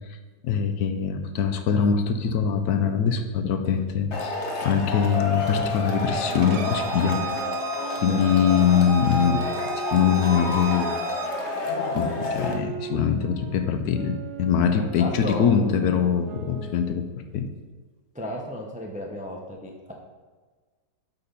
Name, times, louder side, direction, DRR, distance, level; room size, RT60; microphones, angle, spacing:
voice 1, 0.4-7.3 8.0-9.5 9.9-10.9 11.9-17.1 17.3-17.5, left 7 dB, 70° left, 8 dB, 1.1 m, -23 dB
Male speech man speaking / Shout / Clapping, 4.1-12.5, left 3 dB, 50° left, 1.2 m, -29 dB
sound 1, 5.5-11.0 11.7-17.2, right 7 dB, 80° right, 1.1 m, -39 dB
Bowed string instrument, 6.3-11.3, right 5 dB, 65° right, 0.7 m, -36 dB
voice 2, 14.9-15.5 18.1-19.9, left 1 dB, 10° right, 1 dB, 0.4 m, -34 dB
8.3 x 4.2 x 5.2 m, 1.4 s
omnidirectional pair, 1.8 m